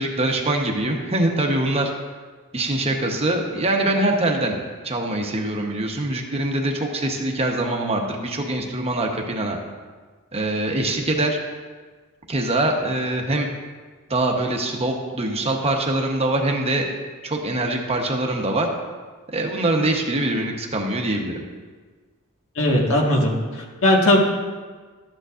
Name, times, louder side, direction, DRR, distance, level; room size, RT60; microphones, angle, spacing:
voice 1, 0.0-1.9 2.5-4.5 4.8-9.6 10.3-11.4 12.3-13.5 14.1-16.9 17.2-18.7 19.3-21.3, right 2 dB, 25° right, 1 dB, 1.0 m, -23 dB
voice 2, 22.5-24.2, left 1 dB, 65° left, -1 dB, 1.6 m, -18 dB
13.0 x 9.2 x 2.5 m, 1.4 s
head